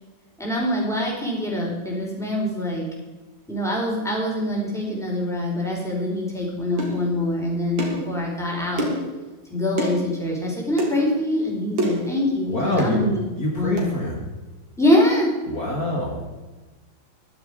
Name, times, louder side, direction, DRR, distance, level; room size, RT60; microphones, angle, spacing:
voice 1, 0.4-2.9 3.5-8.9 9.5-13.1 13.6-13.9 14.8-15.3, left 1 dB, ahead, -3 dB, 4.3 m, -24 dB
sound 1, 6.8-7.0 7.8-8.0 8.8-9.1 9.8-10.0 10.8-10.9 11.8-12.1 12.8-13.0 13.8-13.9, equal, 65° right, 3.3 m, -26 dB
voice 2, 12.5-13.0 13.4-14.2 15.5-16.3, left 1 dB, 45° left, -2 dB, 2.5 m, -25 dB
14.0 x 12.0 x 5.0 m, 1.2 s
omnidirectional pair, 2.2 m